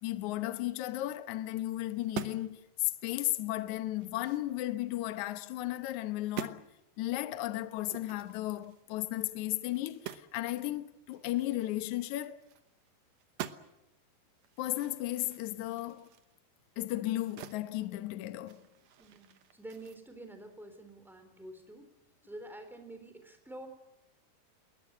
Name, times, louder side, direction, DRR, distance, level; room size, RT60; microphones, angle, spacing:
voice 1, 0.0-6.7 7.0-12.4 14.6-16.1 16.8-18.7, left 16 dB, 65° left, 2.0 m, -35 dB
sound 1, 2.0-2.6 3.0-3.2 3.6-5.3 5.8-6.0 6.2-6.6 7.8-10.4 10.7-10.8 11.1-12.9 13.2-13.9 14.4-17.7 18.0-20.0, right 11 dB, 70° right, 1.6 m, -46 dB
voice 2, 19.0-21.9 22.2-23.7, right 1 dB, ahead, 3.2 m, -48 dB
21.0 x 20.5 x 9.8 m
omnidirectional pair, 4.4 m